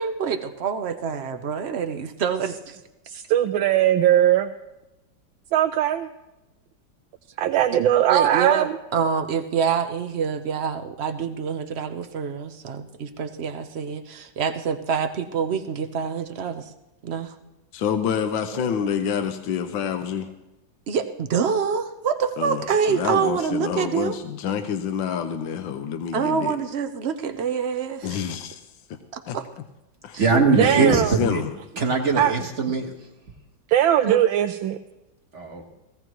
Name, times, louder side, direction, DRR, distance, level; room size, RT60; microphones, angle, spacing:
voice 1, 0.0-2.8 8.1-16.6 17.0-17.3 20.9-24.2 26.1-28.2 29.1-29.5 30.1-30.3 34.0-34.2, right 6 dB, 70° right, 8 dB, 0.6 m, -26 dB
voice 2, 3.1-4.5 5.5-6.1 7.4-8.7 30.6-31.2 32.2-32.3 33.7-34.8, right 11 dB, 90° right, 6 dB, 1.4 m, -20 dB
voice 3, 17.7-20.3 22.4-26.6 28.0-28.6 29.3-29.4 30.0-30.2 30.5-31.5, left 8 dB, 80° left, 7 dB, 1.6 m, -27 dB
voice 4, 30.2-31.4 31.8-32.9 35.3-35.7, right 4 dB, 40° right, 2 dB, 1.5 m, -21 dB
17.5 x 16.0 x 3.1 m, 0.97 s
omnidirectional pair, 2.1 m